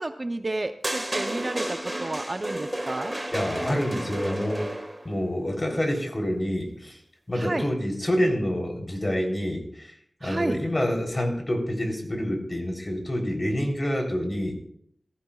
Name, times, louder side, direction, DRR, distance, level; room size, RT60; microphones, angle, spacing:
voice 1, 0.0-3.1 7.3-7.7 10.2-10.6, right 2 dB, 35° right, 7 dB, 0.7 m, -31 dB
sound 1, 0.8-5.1, right 1 dB, 15° right, 1.7 m, -32 dB
voice 2, 3.3-4.7 5.0-7.0 7.3-9.9 10.2-14.5, equal, 25° left, 1 dB, 3.5 m, -27 dB
19.0 x 14.5 x 2.4 m, 0.68 s
wide cardioid pair, 85°, 0 cm